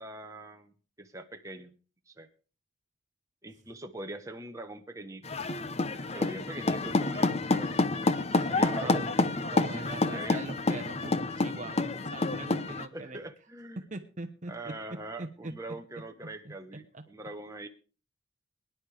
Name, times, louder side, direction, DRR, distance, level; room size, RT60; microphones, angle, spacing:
voice 1, 0.0-1.7 2.1-2.3 3.4-5.2 6.1-9.0 10.1-10.5 12.9-13.9 14.5-17.7, right 2 dB, 15° right, 4 dB, 1.2 m, -43 dB
sound 1, 5.2-12.9, left 2 dB, 30° left, 0.8 m, -28 dB
voice 2, 8.3-9.1 9.4-13.2 13.9-14.7 15.2-15.5 16.9-17.0, right 2 dB, 35° right, 6 dB, 1.0 m, -42 dB
22.5 x 10.5 x 3.4 m, 0.36 s
head